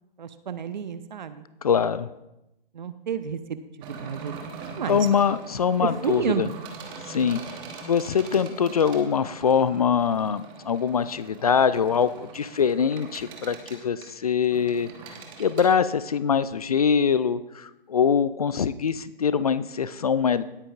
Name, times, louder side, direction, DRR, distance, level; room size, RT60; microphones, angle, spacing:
voice 1, 0.2-1.5 2.7-4.5 4.8-5.1 5.8-6.5, right 7 dB, 50° right, 11 dB, 0.8 m, -31 dB
voice 2, 1.6-2.1 4.9-6.5 7.1-7.4 7.8-14.9 15.4-20.4, left 7 dB, 40° left, 16 dB, 0.4 m, -23 dB
sound 1, 3.8-15.7, right 5 dB, 15° right, 1.1 m, -42 dB
18.0 x 8.8 x 2.4 m, 0.91 s
figure-of-eight pair, 135°, 29 cm